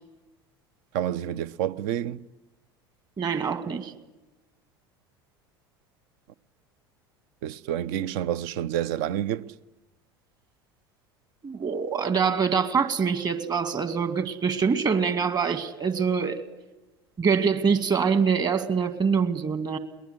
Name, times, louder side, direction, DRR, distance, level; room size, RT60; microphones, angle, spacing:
voice 1, 0.9-2.2 7.4-9.4, right 11 dB, 60° right, 0.8 m, -28 dB
voice 2, 3.2-3.9 11.4-16.4 17.2-19.8, right 6 dB, 30° right, 2.3 m, -24 dB
22.0 x 20.5 x 9.8 m
figure-of-eight pair, 70°, 13 cm